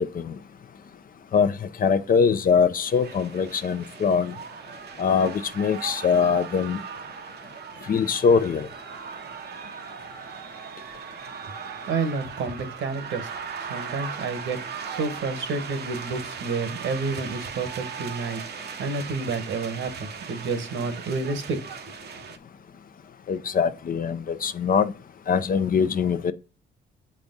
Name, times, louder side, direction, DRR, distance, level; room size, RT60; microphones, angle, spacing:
voice 1, 1.8-4.3 5.0-6.8 7.9-8.7 23.3-24.9 25.3-26.3, left 6 dB, 45° left, 0.7 m, -22 dB
sound 1, 2.9-22.4, right 6 dB, 55° right, 0.9 m, -38 dB
voice 2, 11.9-13.3 13.6-14.6 14.9-18.4 18.8-21.6 22.0-22.1, right 4 dB, 75° right, 1.6 m, -29 dB
7.1 x 5.1 x 3.9 m
cardioid pair, 90°, 20 cm